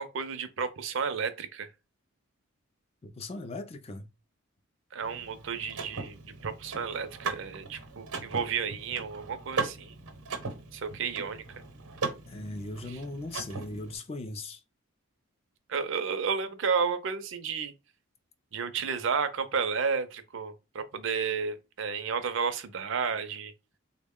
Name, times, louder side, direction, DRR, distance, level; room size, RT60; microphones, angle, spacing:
voice 1, 0.0-1.7 4.9-9.9 10.7-11.4 12.9-13.0 15.7-17.7 18.5-23.5, right 6 dB, 60° right, 0.4 m, -32 dB
voice 2, 3.0-4.1 12.3-14.6, left 2 dB, 25° left, 0.3 m, -38 dB
Car / Mechanisms, 5.0-14.0, right 4 dB, 90° right, 0.8 m, -38 dB
3.6 x 2.1 x 3.5 m
head